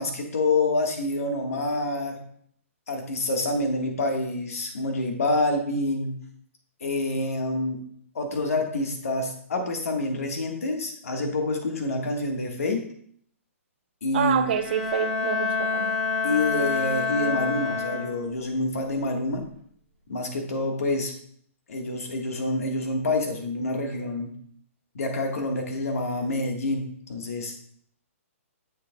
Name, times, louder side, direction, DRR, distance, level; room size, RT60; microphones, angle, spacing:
voice 1, 0.0-2.2 2.9-6.1 6.8-7.8 8.1-12.8 14.0-14.5 16.2-19.5 20.1-21.1 21.7-24.3 24.9-26.8 27.1-27.5, left 2 dB, 75° left, 3 dB, 1.5 m, -27 dB
voice 2, 14.1-16.0, right 8 dB, 40° right, 9 dB, 0.5 m, -27 dB
Bowed string instrument, 14.4-18.4, left 5 dB, ahead, 2.4 m, -28 dB
7.5 x 6.7 x 2.3 m, 0.63 s
hypercardioid pair, 170°, 8 cm